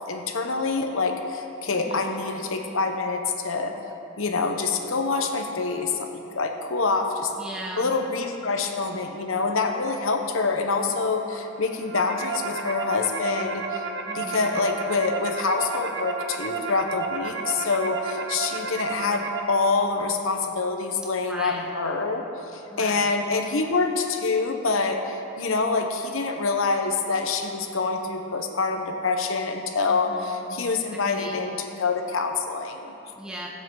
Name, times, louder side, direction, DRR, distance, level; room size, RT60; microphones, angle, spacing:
voice 1, 0.0-3.8 4.2-7.3 7.8-13.8 14.1-22.2 22.5-32.9, left 4 dB, 75° left, 4 dB, 1.0 m, -26 dB
voice 2, 1.7-2.2 7.3-7.9 14.0-14.7 21.2-21.7 22.7-23.1 29.9-31.4 33.1-33.5, equal, 5° right, -3 dB, 1.0 m, -38 dB
sound 1, 11.6-19.4, right 4 dB, 55° right, 0.8 m, -32 dB
18.0 x 7.6 x 3.9 m, 2.9 s
head